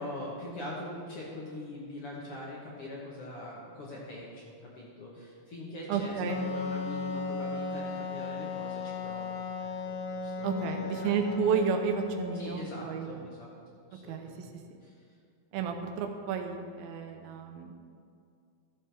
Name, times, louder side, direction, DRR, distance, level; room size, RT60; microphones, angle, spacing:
voice 1, 0.0-11.4 12.3-13.5 13.9-14.5 14.8-15.0, left 1 dB, 60° left, -5 dB, 1.6 m, -43 dB
voice 2, 5.9-6.4 10.4-13.2 14.1-14.3 15.5-17.7, right 6 dB, 90° right, 4 dB, 2.7 m, -31 dB
Wind instrument woodwind instrument, 6.3-12.7, left 4 dB, 85° left, 1.7 m, -36 dB
14.0 x 7.7 x 3.4 m, 2.3 s
omnidirectional pair, 4.3 m